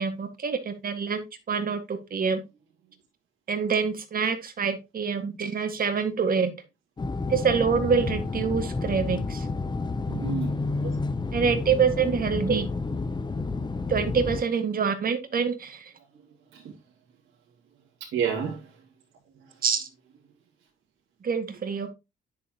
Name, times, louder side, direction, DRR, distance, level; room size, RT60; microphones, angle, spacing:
voice 1, 0.0-2.4 3.5-6.5 7.3-9.5 11.3-12.7 13.9-15.9 19.6-19.9 21.2-21.9, right 6 dB, 45° right, 1.9 m, -26 dB
sound 1, 7.0-14.4, left 3 dB, 20° left, 0.7 m, -30 dB
voice 2, 10.1-10.9 16.5-16.8 18.0-18.8 19.4-19.6, right 7 dB, 80° right, 2.2 m, -31 dB
9.6 x 6.9 x 3.0 m
cardioid pair, 90°, 20 cm